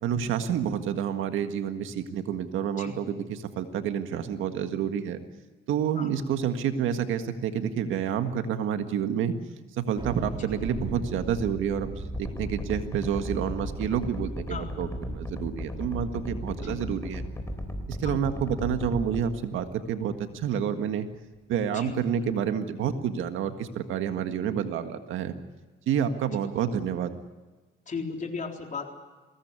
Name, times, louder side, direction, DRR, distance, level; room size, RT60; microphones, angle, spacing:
voice 1, 0.0-5.2 5.7-9.4 9.8-17.2 17.9-21.1 21.5-25.3 25.9-27.1, right 8 dB, 85° right, 8 dB, 1.8 m, -29 dB
Thunder, 10.0-20.6, right 1 dB, 25° right, 5.4 m, -41 dB
sound 1, 12.1-19.2, left 1 dB, 15° left, 3.7 m, -35 dB
voice 2, 27.9-28.9, left 4 dB, 40° left, 3 dB, 3.9 m, -35 dB
22.0 x 17.5 x 9.7 m, 1.3 s
cardioid pair, 90°, 20 cm